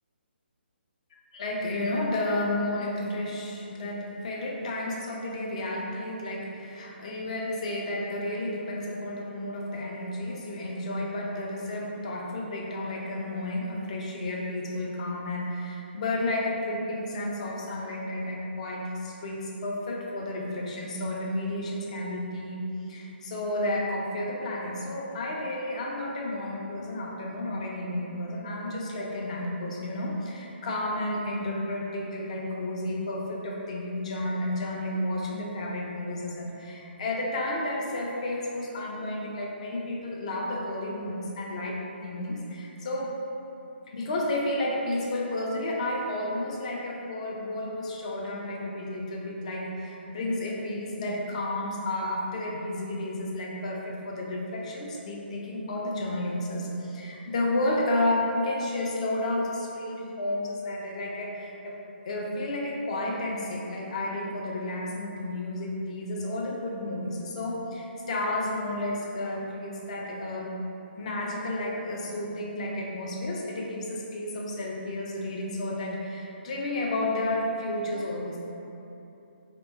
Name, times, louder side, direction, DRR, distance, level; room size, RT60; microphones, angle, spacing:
voice 1, 1.3-22.6 22.9-43.1 43.9-61.8 62.0-70.5 71.0-78.4, left 1 dB, 35° left, -2 dB, 0.4 m, -32 dB
3.5 x 2.3 x 2.6 m, 2.9 s
figure-of-eight pair, 135°, 6 cm